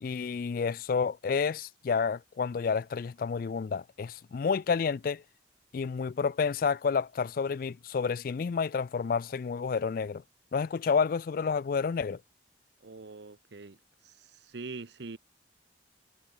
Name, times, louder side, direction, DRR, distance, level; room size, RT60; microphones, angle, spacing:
voice 1, 0.0-5.2 5.7-10.2 10.5-12.2, left 5 dB, 50° left, 0.3 m, -30 dB
voice 2, 12.8-13.8 14.0-15.2, right 3 dB, 65° right, 0.8 m, -43 dB
head